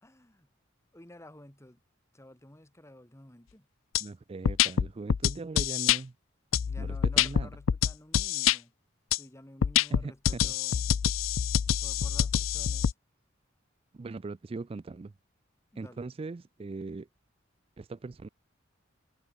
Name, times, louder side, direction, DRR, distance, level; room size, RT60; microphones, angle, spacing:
voice 1, 0.0-0.5 0.9-1.8 2.1-3.7 6.7-8.7 9.1-10.8 11.6-12.9 15.7-16.1, left 1 dB, 15° left, 1.9 m, -52 dB
sound 1, 3.9-4.0 4.4-6.0 6.5-8.6 9.1-9.2 9.6-12.9, left 9 dB, 85° left, 0.4 m, -26 dB
voice 2, 4.0-6.1 6.8-7.5 9.9-10.5 13.9-15.1 15.8-17.1 17.8-18.3, right 3 dB, 30° right, 0.4 m, -40 dB
head